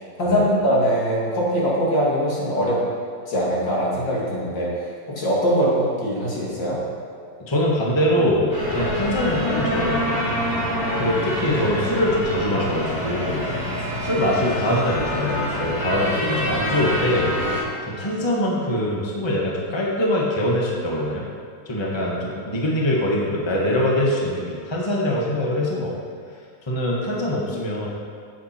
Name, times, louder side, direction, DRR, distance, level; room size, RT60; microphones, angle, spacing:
voice 1, 0.2-2.8 3.3-4.7 5.1-6.8, equal, 60° left, -6 dB, 3.4 m, -22 dB
voice 2, 7.4-10.2 11.0-13.4 14.0-17.3 17.8-21.2 21.6-25.9 26.7-27.9, left 1 dB, 15° left, -4 dB, 1.6 m, -23 dB
sound 1, 8.5-17.6, equal, 45° left, 3.9 m, -26 dB
16.0 x 8.1 x 4.5 m, 2.2 s
omnidirectional pair, 2.2 m